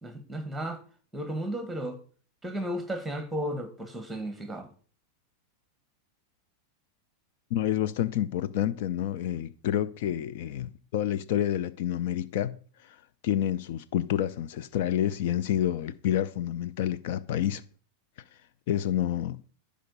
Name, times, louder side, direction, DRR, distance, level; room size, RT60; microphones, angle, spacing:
voice 1, 0.0-0.8 1.1-2.0 2.4-4.7, equal, 5° right, 2.0 m, -34 dB
voice 2, 7.5-12.6 12.8-13.0 13.2-17.6 18.7-19.4, left 11 dB, 65° left, 0.7 m, -28 dB
12.0 x 5.1 x 6.8 m
hypercardioid pair, 125°, 0 cm